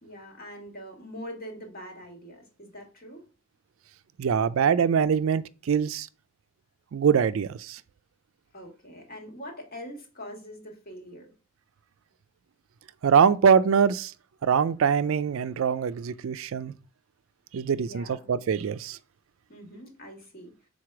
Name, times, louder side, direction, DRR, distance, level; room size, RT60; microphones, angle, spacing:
voice 1, 0.0-3.3 8.5-11.3 17.7-18.3 19.5-20.5, equal, 40° left, 1.8 m, -43 dB
voice 2, 4.2-6.1 6.9-7.8 13.0-14.1 14.4-16.7 17.5-19.0, right 7 dB, 65° right, 0.4 m, -23 dB
4.8 x 4.1 x 5.9 m
head